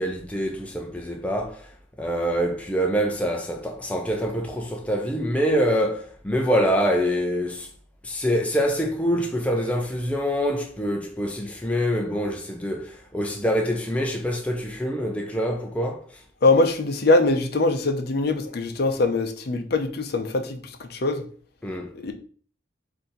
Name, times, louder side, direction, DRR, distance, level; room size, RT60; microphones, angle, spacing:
voice 1, 0.0-1.6 2.0-7.7 8.0-16.0 21.6-21.9, equal, 5° left, 0.4 m, -25 dB
voice 2, 16.4-21.3 21.9-22.1, left 2 dB, 55° left, 0.6 m, -22 dB
4.2 x 2.7 x 3.8 m
head